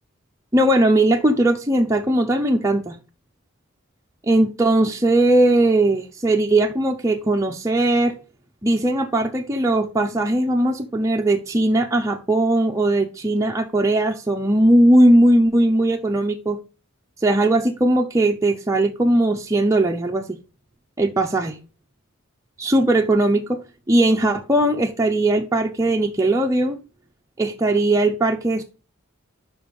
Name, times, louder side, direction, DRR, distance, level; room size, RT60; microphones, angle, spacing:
voice 1, 0.5-3.0 4.2-8.1 8.6-16.6 17.2-20.2 21.0-21.6 22.6-23.6 23.9-26.8 27.4-28.6, right 1 dB, 15° right, 0.5 m, -19 dB
5.2 x 5.2 x 5.0 m
head